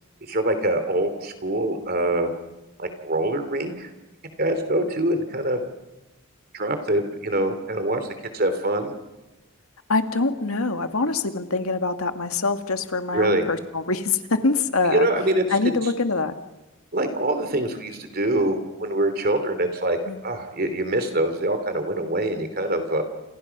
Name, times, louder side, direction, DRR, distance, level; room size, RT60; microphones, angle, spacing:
voice 1, 0.2-2.3 2.8-3.9 4.4-5.6 6.5-8.0 8.3-8.9 13.1-13.4 14.9-15.4 16.9-23.0, right 1 dB, 45° right, 8 dB, 3.3 m, -24 dB
voice 2, 9.9-15.1 15.5-16.3 20.1-20.2, left 3 dB, 90° left, 7 dB, 2.0 m, -24 dB
29.5 x 27.5 x 6.1 m, 1.0 s
head